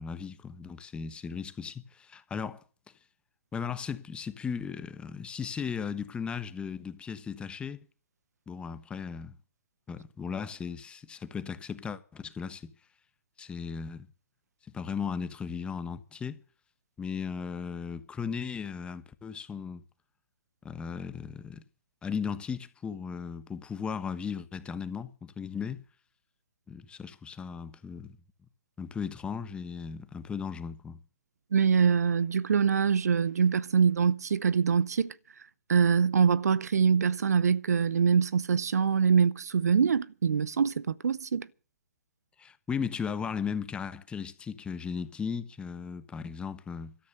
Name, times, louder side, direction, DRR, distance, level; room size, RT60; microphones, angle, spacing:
voice 1, 0.0-2.6 3.5-7.8 8.5-9.4 9.9-12.7 13.4-14.1 14.7-16.4 17.0-19.8 20.6-21.6 22.0-25.8 26.7-28.2 28.8-31.0 42.4-47.0, left 6 dB, 10° left, 1.1 m, -36 dB
voice 2, 31.5-35.1 35.7-41.5, right 6 dB, 75° right, 0.8 m, -24 dB
13.5 x 13.0 x 6.6 m
hypercardioid pair, 135°, 9 cm